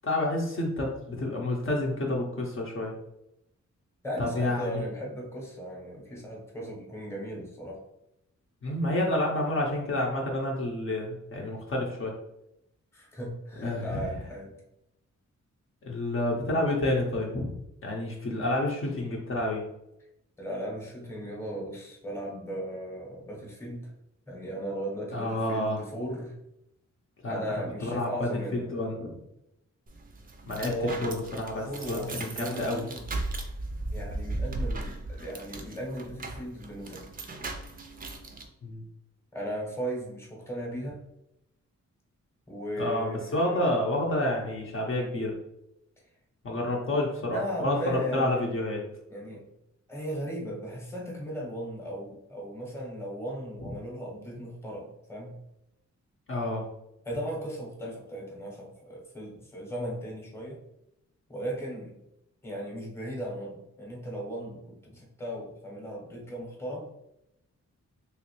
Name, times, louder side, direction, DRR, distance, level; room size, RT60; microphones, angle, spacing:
voice 1, 0.0-2.9 4.2-4.8 8.6-12.1 13.6-14.0 15.8-17.5 17.8-19.6 25.1-25.8 27.2-27.4 27.8-29.1 30.5-30.7 31.0-32.8 38.6-38.8 42.8-45.4 46.4-48.8 56.3-56.6, left 1 dB, 45° left, -2 dB, 0.6 m, -29 dB
voice 2, 4.0-7.8 12.9-14.6 20.4-23.9 24.3-26.4 27.2-28.8 30.6-31.2 31.6-33.1 33.9-37.2 39.3-41.0 42.5-43.7 46.9-47.0 47.3-48.6 49.1-49.4 49.9-55.4 57.0-60.6 61.3-62.0 62.4-66.9, equal, 10° left, -2 dB, 0.8 m, -37 dB
sound 1, 29.9-38.5, right 2 dB, 30° right, 0.4 m, -37 dB
3.1 x 2.9 x 3.0 m, 0.85 s
wide cardioid pair, 155°, 29 cm